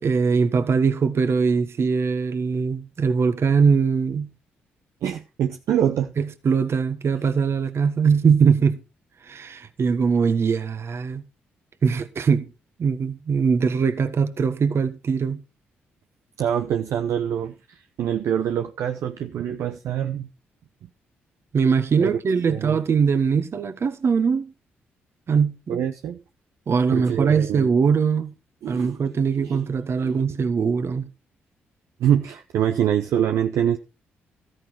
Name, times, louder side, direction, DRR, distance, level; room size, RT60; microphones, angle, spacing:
voice 1, 0.0-4.3 6.2-8.8 9.3-11.2 11.8-12.5 12.8-15.4 21.5-24.5 25.3-25.8 26.7-28.3 28.7-31.1, right 5 dB, 50° right, 1.4 m, -21 dB
voice 2, 5.0-6.1 16.4-20.3 22.0-22.1 22.5-22.8 25.7-26.2 26.9-27.7 28.6-29.0 29.4-29.6 30.0-30.2 32.0-33.8, right 9 dB, 65° right, 0.8 m, -25 dB
13.5 x 9.4 x 4.4 m
hypercardioid pair, 45°, 5 cm